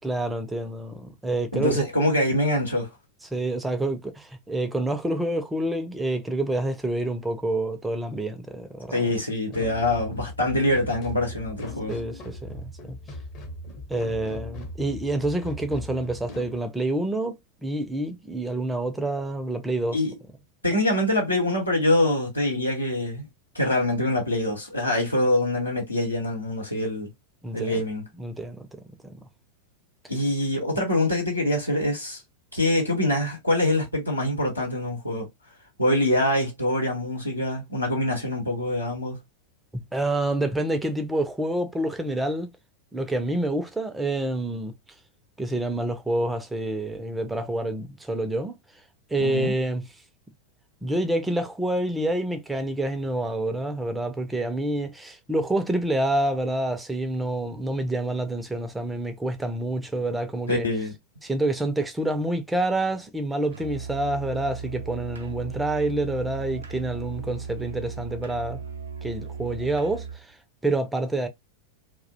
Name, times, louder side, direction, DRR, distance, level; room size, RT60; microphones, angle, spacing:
voice 1, 0.0-1.9 3.3-9.1 11.9-13.0 13.9-17.4 17.6-20.0 27.4-27.8 28.2-28.7 29.0-29.2 39.7-42.5 42.9-44.7 45.4-48.5 49.1-49.9 50.8-60.7 61.2-68.6 69.0-70.4 70.6-71.3, right 1 dB, 5° right, 0.4 m, -27 dB
voice 2, 1.5-2.9 8.9-12.0 19.9-20.1 20.6-23.3 23.5-27.1 27.5-28.0 30.1-32.2 32.5-35.3 35.8-39.2 49.2-49.5 60.5-60.9, left 1 dB, 85° left, 0.8 m, -24 dB
sound 1, 9.5-16.6, left 1 dB, 35° left, 0.7 m, -39 dB
Musical instrument, 63.5-70.2, right 5 dB, 70° right, 0.4 m, -37 dB
2.4 x 2.1 x 2.5 m
figure-of-eight pair, 90°, 0 cm